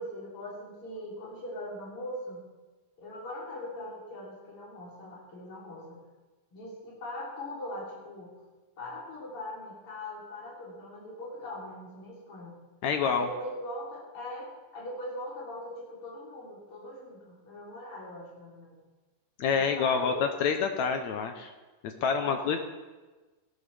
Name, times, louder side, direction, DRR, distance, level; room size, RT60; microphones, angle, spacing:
voice 1, 0.0-2.4 3.0-6.0 6.5-8.3 8.8-12.6 13.0-18.8 19.5-20.3 22.1-22.6, left 1 dB, 40° left, -5 dB, 4.3 m, -41 dB
voice 2, 12.8-13.3 19.4-21.5 21.8-22.6, left 6 dB, 70° left, 5 dB, 1.9 m, -27 dB
16.5 x 12.5 x 3.4 m, 1.2 s
omnidirectional pair, 3.8 m